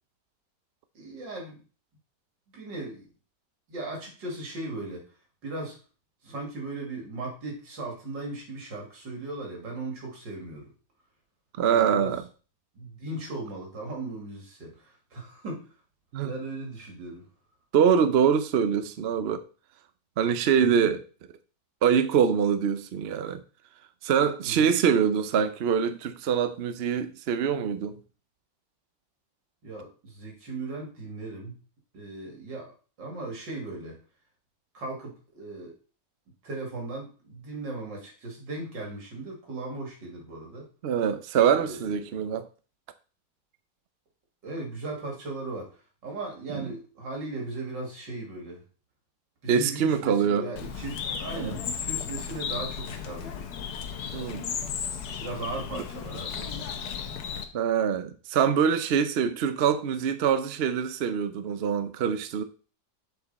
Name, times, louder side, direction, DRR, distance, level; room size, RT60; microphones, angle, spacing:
voice 1, 0.9-1.6 2.5-3.1 3.7-5.1 5.4-5.8 6.2-10.7 11.7-12.1 12.7-15.7 16.2-17.2 20.6-20.9 24.4-24.7 29.6-31.5 31.9-32.7 33.0-34.0 34.7-35.7 36.4-40.7 41.5-42.0 44.4-48.6 49.4-53.5 55.2-56.7, right 2 dB, 90° right, 3.1 m, -37 dB
voice 2, 11.6-12.2 16.1-16.3 17.7-19.4 20.2-21.0 21.8-23.4 24.0-28.0 40.8-42.5 46.5-46.6 49.5-50.5 51.4-51.5 54.1-54.5 57.5-62.4, right 7 dB, 60° right, 0.6 m, -24 dB
Bird, 50.5-57.4, left 7 dB, 70° left, 1.4 m, -35 dB
7.5 x 5.3 x 4.1 m
omnidirectional pair, 1.9 m